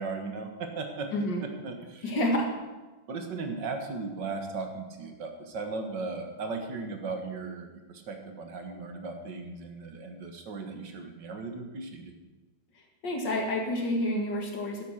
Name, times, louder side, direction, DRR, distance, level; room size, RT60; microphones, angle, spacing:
voice 1, 0.0-1.1 1.4-2.1 3.1-12.1, right 4 dB, 75° right, 4 dB, 2.1 m, -37 dB
voice 2, 2.0-2.5 13.0-14.8, left 1 dB, 75° left, 1 dB, 2.6 m, -28 dB
12.0 x 8.4 x 6.5 m, 1.2 s
omnidirectional pair, 2.0 m